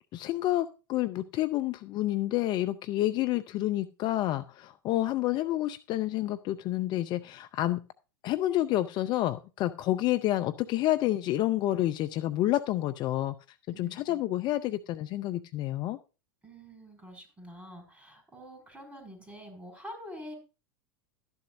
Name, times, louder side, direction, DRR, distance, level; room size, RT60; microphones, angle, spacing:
voice 1, 0.1-7.8 8.2-13.3 13.7-16.0, left 14 dB, 40° left, 12 dB, 0.6 m, -29 dB
voice 2, 13.7-14.2 16.4-20.3, equal, 10° right, 5 dB, 5.8 m, -46 dB
13.0 x 10.5 x 2.6 m, 0.32 s
figure-of-eight pair, 90°, 12 cm